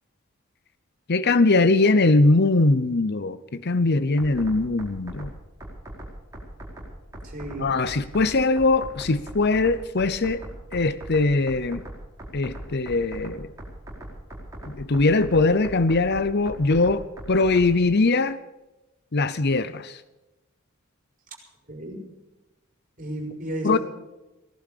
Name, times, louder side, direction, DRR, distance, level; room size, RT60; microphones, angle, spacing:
voice 1, 1.1-5.3 7.6-10.4 10.7-11.8 12.3-13.5 14.7-18.4 19.1-19.9 23.6-23.8, left 3 dB, 50° left, 0.8 m, -21 dB
sound 1, 4.2-17.8, right 1 dB, 15° right, 4.9 m, -41 dB
voice 2, 7.2-7.7 21.7-22.0 23.0-23.8, right 1 dB, 40° right, 5.3 m, -33 dB
18.0 x 12.0 x 6.8 m
head